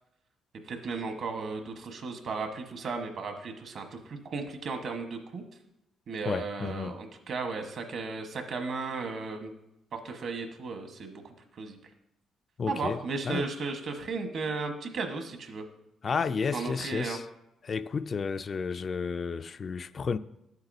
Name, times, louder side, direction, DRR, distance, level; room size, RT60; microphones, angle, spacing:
voice 1, 0.6-5.4 6.1-9.5 9.9-11.8 12.7-15.6 16.5-17.2, right 4 dB, 60° right, 1.2 m, -35 dB
voice 2, 6.3-7.0 12.6-13.0 13.3-13.5 16.0-17.2 17.6-20.2, left 5 dB, 45° left, 0.3 m, -32 dB
11.0 x 8.0 x 2.7 m
cardioid pair, 90°, 0 cm